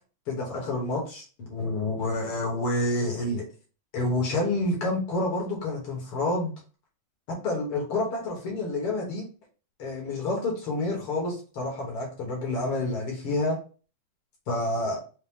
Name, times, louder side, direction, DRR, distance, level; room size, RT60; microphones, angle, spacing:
voice 1, 0.3-3.5 3.9-6.5 7.3-9.3 9.8-13.6 14.5-15.0, left 2 dB, 55° left, -1 dB, 1.7 m, -28 dB
5.7 x 2.2 x 3.5 m, 0.36 s
omnidirectional pair, 3.7 m